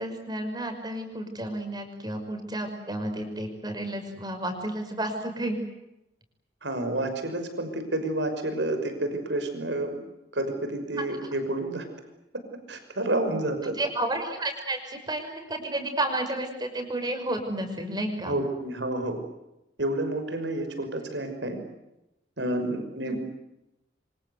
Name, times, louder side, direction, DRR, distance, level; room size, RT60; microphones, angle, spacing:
voice 1, 0.0-5.6 10.9-11.1 13.6-18.3 23.0-23.2, right 1 dB, 25° right, 5 dB, 5.8 m, -31 dB
voice 2, 6.6-10.0 10.3-11.8 12.7-13.8 18.3-19.2 19.8-21.6 22.4-23.2, right 1 dB, 90° right, 7 dB, 5.9 m, -29 dB
27.5 x 26.0 x 8.2 m, 0.90 s
head